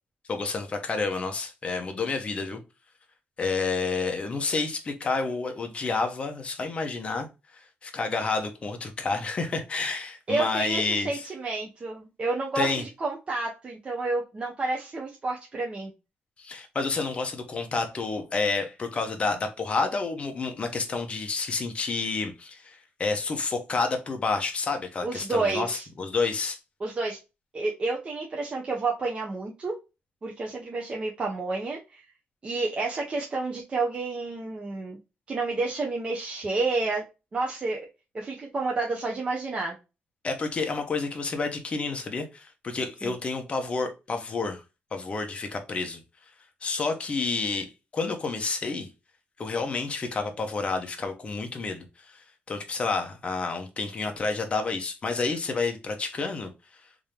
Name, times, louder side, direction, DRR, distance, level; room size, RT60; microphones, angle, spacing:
voice 1, 0.3-2.6 3.4-11.2 12.5-12.8 16.4-26.6 40.2-44.6 44.9-46.0 46.6-48.9 49.4-56.5, left 4 dB, 30° left, 0.9 m, -29 dB
voice 2, 10.3-15.9 25.0-25.9 26.8-27.2 27.5-29.7 30.2-32.0 32.4-35.0 35.3-37.0 37.3-37.8 38.1-39.8 43.0-43.1, right 3 dB, 30° right, 0.8 m, -30 dB
3.7 x 2.8 x 3.3 m
cardioid pair, 135°, 4 cm